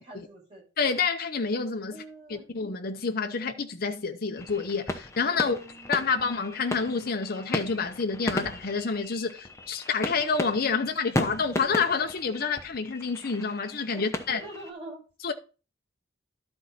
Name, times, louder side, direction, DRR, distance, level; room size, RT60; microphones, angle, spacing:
voice 1, 0.0-0.6 1.8-2.4 5.3-6.3 13.9-15.0, right 2 dB, 30° right, 5.7 m, -45 dB
voice 2, 0.8-2.0 2.3-5.6 5.9-14.4 15.2-15.3, left 5 dB, 50° left, 0.7 m, -28 dB
sound 1, 4.4-14.7, left 1 dB, 15° left, 0.9 m, -36 dB
12.0 x 4.5 x 4.1 m
head